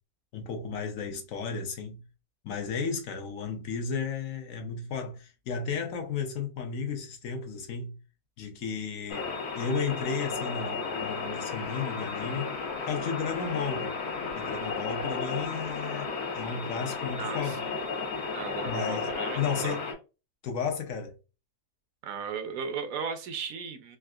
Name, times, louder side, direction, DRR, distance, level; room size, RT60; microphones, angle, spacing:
voice 1, 0.3-2.0 2.4-8.0 8.4-12.6 12.8-13.9 14.4-17.6 18.7-19.9 20.4-21.2, left 5 dB, 70° left, 0.9 m, -34 dB
sound 1, 9.1-19.9, left 4 dB, 85° left, 1.3 m, -34 dB
voice 2, 17.2-17.8 18.3-19.4 19.6-19.8 22.0-24.0, right 6 dB, 70° right, 0.9 m, -36 dB
3.6 x 2.4 x 2.3 m
omnidirectional pair, 1.6 m